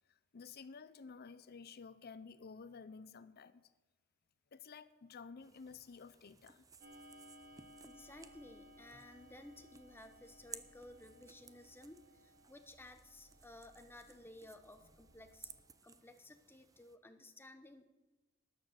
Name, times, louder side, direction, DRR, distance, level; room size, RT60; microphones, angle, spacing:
voice 1, 0.3-3.7 4.5-6.6, left 5 dB, 50° left, 15 dB, 0.6 m, -52 dB
sound 1, 5.4-17.0, right 5 dB, 15° right, 0.5 m, -59 dB
Clock, 6.8-15.8, equal, 50° right, 2.1 m, -62 dB
voice 2, 7.8-15.5 15.8-17.8, left 1 dB, 10° left, 8 dB, 0.9 m, -56 dB
12.5 x 10.5 x 6.4 m, 1.1 s
head